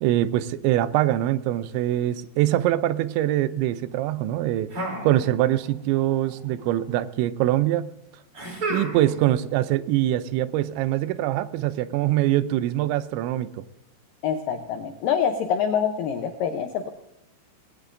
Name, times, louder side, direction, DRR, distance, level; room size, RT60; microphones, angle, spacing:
voice 1, 0.0-4.7 5.0-7.9 8.7-13.7, right 14 dB, 85° right, 14 dB, 3.0 m, -23 dB
sound 1, 4.7-5.7 6.0-6.7 8.3-9.3, right 2 dB, 35° right, 3.7 m, -32 dB
voice 2, 14.2-16.9, left 7 dB, 90° left, 6 dB, 1.9 m, -25 dB
19.0 x 17.5 x 2.6 m, 0.84 s
omnidirectional pair, 5.2 m